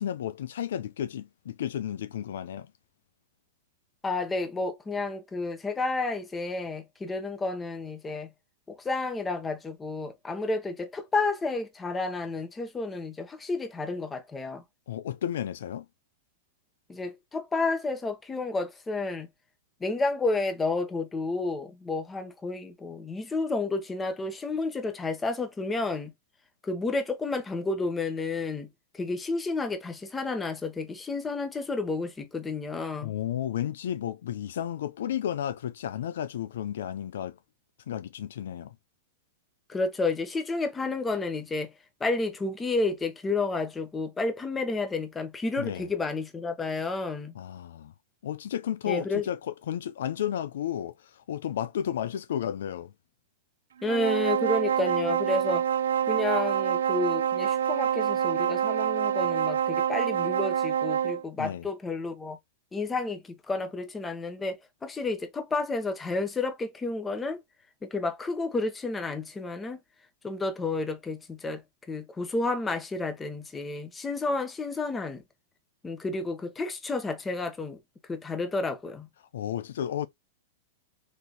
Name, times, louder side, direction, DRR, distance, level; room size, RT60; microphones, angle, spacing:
voice 1, 0.0-2.7 14.9-15.9 33.0-37.4 37.9-38.7 45.6-45.9 47.4-47.9 48.2-52.9 61.4-61.7 79.3-80.1, left 10 dB, 75° left, 0.4 m, -32 dB
voice 2, 4.0-8.3 8.7-14.6 16.9-19.3 19.8-26.1 26.6-28.7 28.9-33.1 39.7-41.7 42.0-47.3 48.9-49.2 53.8-55.6 56.0-62.4 62.7-67.4 67.8-69.8 70.2-71.6 71.9-75.2 75.8-77.8 78.1-79.1, left 3 dB, 15° left, 1.1 m, -31 dB
sound 1, 53.8-61.2, right 9 dB, 85° right, 0.4 m, -26 dB
3.2 x 2.9 x 4.0 m
hypercardioid pair, 125°, 0 cm